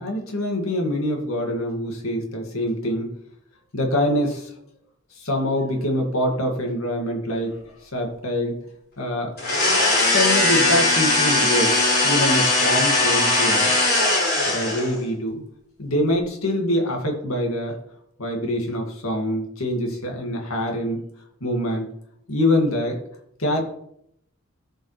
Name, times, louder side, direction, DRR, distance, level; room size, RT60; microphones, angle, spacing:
voice 1, 0.0-3.1 3.7-4.5 5.2-8.6 9.0-9.3 9.8-13.7 14.5-15.4 15.8-17.7 18.2-21.0 21.4-21.9 22.3-23.0 23.4-23.6, left 1 dB, 75° left, 1 dB, 2.1 m, -25 dB
sound 1, 9.4-15.0, left 2 dB, 50° left, 4.1 m, -19 dB
16.0 x 5.6 x 3.3 m, 0.75 s
head